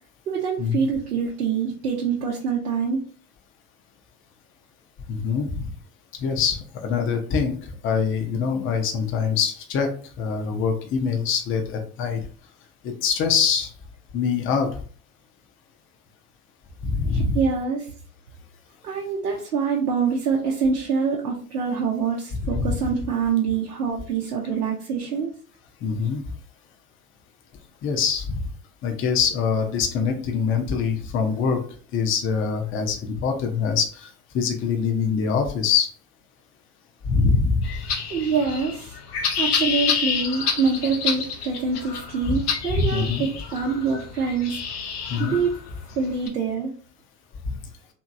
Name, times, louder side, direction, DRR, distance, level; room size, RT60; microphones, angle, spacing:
voice 1, 0.3-3.1 17.1-17.9 18.8-25.3 38.1-38.9 39.4-44.6 45.2-45.5 46.0-46.8, right 5 dB, 85° right, -2 dB, 0.7 m, -25 dB
voice 2, 5.1-5.7 6.2-9.9 10.2-12.2 13.0-13.7 14.1-14.7 16.8-17.4 22.5-22.7 25.8-26.2 27.8-28.4 28.8-31.6 31.9-34.1 34.3-35.9 37.1-37.6 42.7-43.3 45.1-45.4, left 6 dB, 30° left, 4 dB, 0.6 m, -24 dB
sound 1, 37.6-46.3, left 6 dB, 80° left, 0.7 m, -29 dB
2.8 x 2.8 x 2.5 m, 0.43 s
hypercardioid pair, 80°, 45 cm